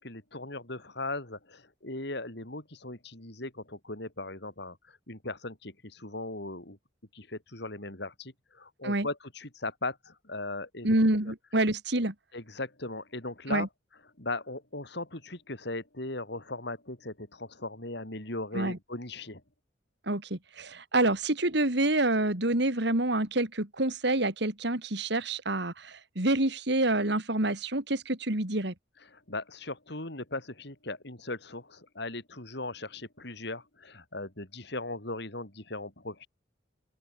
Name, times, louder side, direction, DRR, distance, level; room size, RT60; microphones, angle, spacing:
voice 1, 0.0-6.8 7.1-10.9 12.3-13.7 14.2-19.4 29.1-36.3, left 2 dB, 60° left, 5.2 m, -38 dB
voice 2, 10.8-12.1 13.5-13.7 18.5-18.8 20.1-28.7, right 2 dB, 65° right, 3.2 m, -27 dB
open air
head